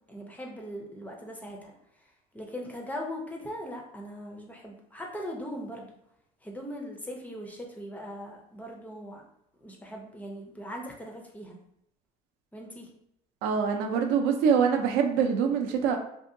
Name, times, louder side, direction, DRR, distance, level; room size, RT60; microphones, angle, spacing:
voice 1, 0.1-1.7 2.3-5.9 6.4-9.2 9.6-11.6 12.5-12.9, equal, 10° left, 0 dB, 0.4 m, -40 dB
voice 2, 13.4-16.0, right 6 dB, 70° right, 4 dB, 0.5 m, -24 dB
2.7 x 2.6 x 2.6 m, 0.75 s
cardioid pair, 135°, 18 cm